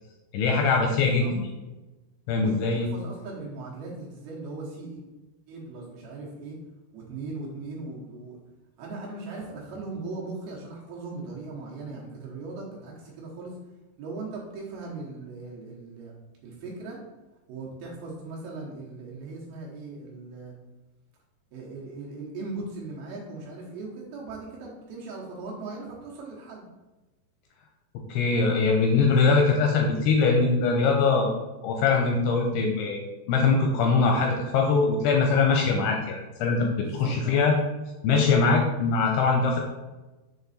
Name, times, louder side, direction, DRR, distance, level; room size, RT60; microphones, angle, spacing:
voice 1, 0.3-1.3 2.3-2.8 28.1-31.3 31.6-36.7 37.0-37.6 38.0-39.6, left 4 dB, 80° left, 1 dB, 2.4 m, -22 dB
voice 2, 1.0-1.3 2.4-5.0 5.5-6.6 6.9-8.4 8.8-13.5 14.0-16.1 16.4-17.0 17.5-20.5 21.5-26.6 36.8-37.5, right 3 dB, 70° right, -3 dB, 2.7 m, -39 dB
7.3 x 3.9 x 4.1 m, 1.1 s
omnidirectional pair, 5.1 m